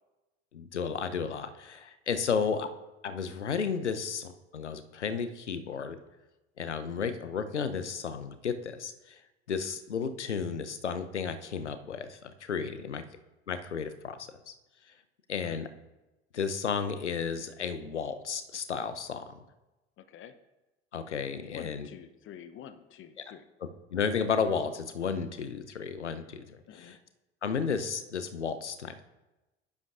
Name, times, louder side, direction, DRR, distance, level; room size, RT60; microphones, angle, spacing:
voice 1, 0.5-2.7 3.0-6.0 6.6-9.2 9.5-13.0 13.5-14.2 14.5-14.6 15.3-15.7 16.3-19.3 20.9-21.9 23.9-27.0 27.4-29.0, left 6 dB, 85° left, 10 dB, 0.7 m, -33 dB
voice 2, 20.0-20.3 21.5-23.4 26.7-27.0, left 9 dB, 35° left, 11 dB, 0.7 m, -48 dB
10.5 x 10.5 x 2.5 m, 1.1 s
figure-of-eight pair, 65°, 34 cm